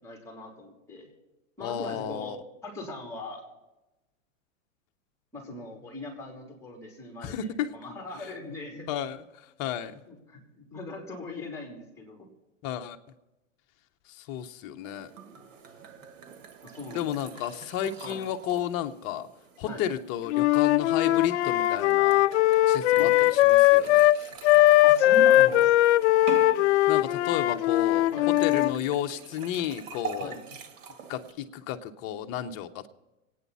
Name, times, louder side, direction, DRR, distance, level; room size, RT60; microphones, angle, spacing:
voice 1, 0.0-1.1 1.6-2.3 2.6-3.4 5.3-8.9 10.1-12.3 16.6-17.1 18.0-18.2 19.6-19.8 23.0-23.2 24.8-25.9 28.1-28.3 30.2-30.4, left 1 dB, 5° left, 1 dB, 3.3 m, -40 dB
voice 2, 1.6-2.4 7.2-7.7 8.9-10.0 12.6-13.0 14.1-15.1 16.9-19.3 19.6-22.2 22.7-24.1 26.9-30.3 31.1-32.9, left 10 dB, 35° left, 7 dB, 1.0 m, -32 dB
sound 1, 14.8-31.3, right 6 dB, 70° right, 2.1 m, -45 dB
Wind instrument woodwind instrument, 20.3-24.2 24.4-28.8, left 15 dB, 60° left, 0.5 m, -20 dB
25.5 x 9.4 x 4.2 m, 1.0 s
hypercardioid pair, 130°, 39 cm